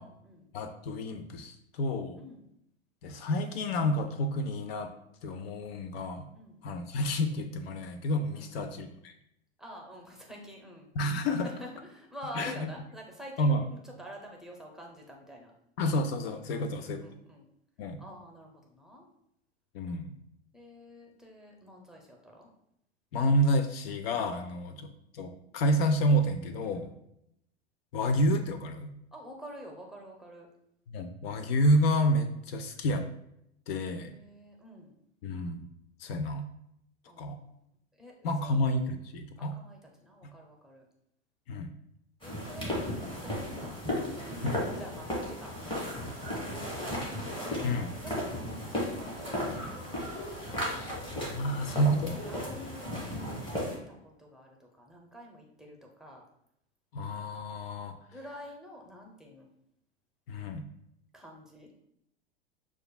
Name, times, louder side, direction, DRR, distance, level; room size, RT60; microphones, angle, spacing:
voice 1, 0.0-0.5 2.2-2.5 6.3-6.6 8.3-8.7 9.6-10.9 11.4-15.5 16.5-17.5 18.0-19.1 20.5-22.5 24.7-24.9 26.7-27.0 29.1-30.5 33.9-34.9 37.1-37.6 38.0-38.1 38.4-38.5 39.4-40.8 42.2-43.8 44.1-47.0 47.4-48.3 48.9-50.8 51.5-53.3 53.9-56.2 58.1-59.5 61.1-61.7, equal, ahead, 0 dB, 0.7 m, -48 dB
voice 2, 0.5-2.2 3.0-4.9 5.2-6.3 6.6-9.1 11.0-11.5 12.4-12.5 13.4-13.7 15.8-17.0 17.8-18.0 19.7-20.1 23.1-26.9 27.9-28.9 30.9-33.1 33.7-34.1 35.2-35.7 36.0-36.5 37.2-37.4 38.2-39.5 40.2-40.3 41.5-41.7 44.4-44.6 47.6-47.9 51.2-52.2 56.9-58.0 60.3-60.6, equal, 65° left, 8 dB, 0.5 m, -29 dB
sound 1, 42.2-53.8, left 1 dB, 15° left, 1.4 m, -35 dB
6.3 x 2.4 x 2.3 m, 0.77 s
hypercardioid pair, 95°, 33 cm